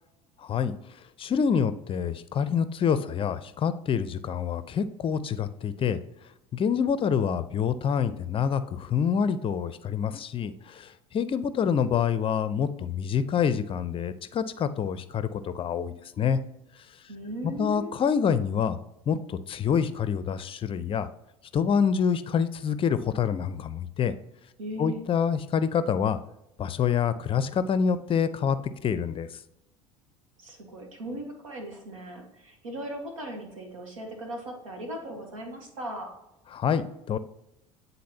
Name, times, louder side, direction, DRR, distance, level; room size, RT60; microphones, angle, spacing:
voice 1, 0.4-0.8 1.2-6.0 6.5-16.4 17.4-18.8 19.1-21.1 21.5-24.1 24.8-26.2 26.6-28.6 28.8-29.3 36.5-37.2, left 7 dB, 35° left, 14 dB, 0.5 m, -26 dB
voice 2, 17.1-18.0 24.6-25.0 30.4-36.1, equal, 85° right, 2 dB, 1.6 m, -38 dB
9.4 x 3.9 x 2.8 m, 0.85 s
hypercardioid pair, 70°, 17 cm